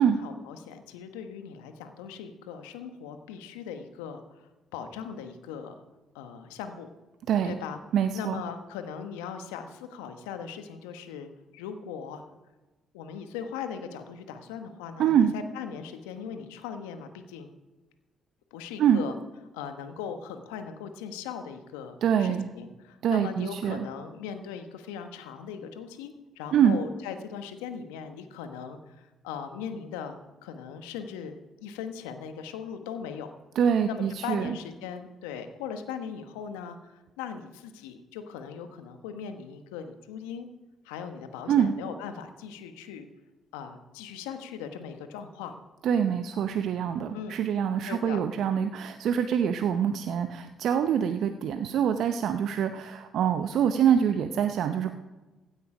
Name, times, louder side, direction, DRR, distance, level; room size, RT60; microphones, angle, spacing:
voice 1, 0.0-5.7 6.1-6.9 7.4-7.8 8.1-12.2 12.9-17.5 18.5-19.1 19.5-31.3 31.6-33.3 33.8-40.5 40.8-43.1 43.5-45.5 47.1-47.4 47.9-48.2, left 7 dB, 85° left, 8 dB, 1.1 m, -39 dB
voice 2, 7.3-7.6 7.9-8.4 15.0-15.3 18.8-19.0 22.0-22.5 23.0-23.9 26.5-26.8 33.6-34.6 41.5-41.7 45.8-54.9, right 8 dB, 70° right, 8 dB, 0.7 m, -25 dB
15.5 x 8.8 x 5.0 m, 1.1 s
hypercardioid pair, 50°, 0 cm